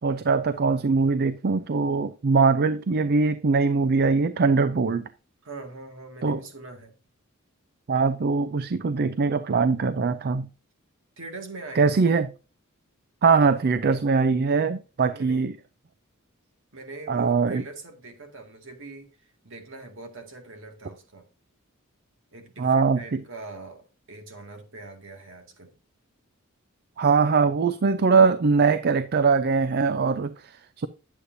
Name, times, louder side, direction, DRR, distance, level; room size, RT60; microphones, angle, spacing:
voice 1, 0.0-5.1 6.2-6.4 7.9-10.5 11.8-12.3 13.2-15.5 17.1-17.6 22.6-23.2 27.0-30.9, right 4 dB, 50° right, 0.4 m, -22 dB
voice 2, 5.4-7.0 11.2-12.2 15.0-15.5 16.7-21.3 22.3-25.7, right 2 dB, 65° right, 2.0 m, -42 dB
9.6 x 8.3 x 2.6 m
head